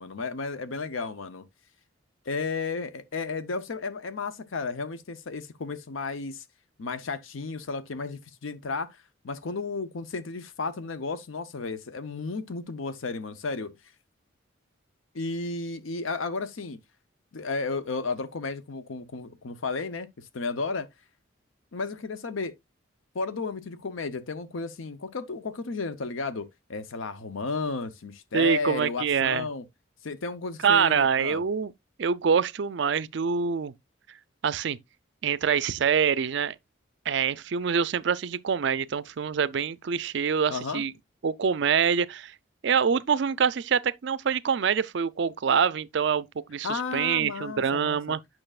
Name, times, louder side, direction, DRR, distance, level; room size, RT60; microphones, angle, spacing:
voice 1, 0.0-1.5 2.3-6.4 6.8-8.9 9.2-13.7 15.1-16.8 17.3-20.1 20.3-20.9 21.7-22.5 23.1-29.6 30.0-31.4 40.5-40.8 46.6-48.0, left 4 dB, 85° left, 0.7 m, -33 dB
voice 2, 28.3-29.5 30.6-31.7 32.0-33.7 34.4-34.8 35.2-36.5 37.1-40.9 41.2-42.3 42.6-48.2, right 6 dB, 60° right, 0.4 m, -25 dB
8.9 x 5.9 x 2.4 m
head